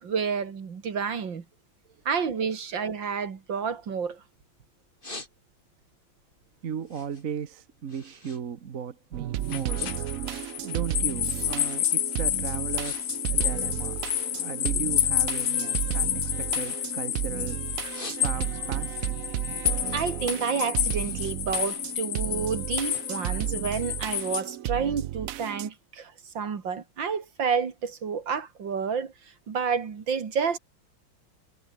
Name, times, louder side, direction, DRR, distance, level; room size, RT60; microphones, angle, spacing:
voice 1, 0.0-1.4 2.1-4.2 19.9-29.1 29.5-30.6, right 6 dB, 70° right, 2.9 m, -30 dB
voice 2, 2.3-2.6 6.6-10.3 10.6-14.0 14.3-17.6 18.2-19.1, right 7 dB, 45° right, 1.5 m, -36 dB
sound 1, 3.5-4.4 4.8-5.8 6.2-8.4 8.7-10.7 11.0-11.4 12.0-12.2 12.5-13.0 13.3-14.5 15.0-17.3 17.7-18.7 19.1-22.3, left 2 dB, 25° left, 4.6 m, -47 dB
sound 2, 9.1-25.7, right 13 dB, 85° right, 0.7 m, -33 dB
sound 3, 9.4-24.4, left 12 dB, 65° left, 1.3 m, -30 dB
omnidirectional pair, 2.2 m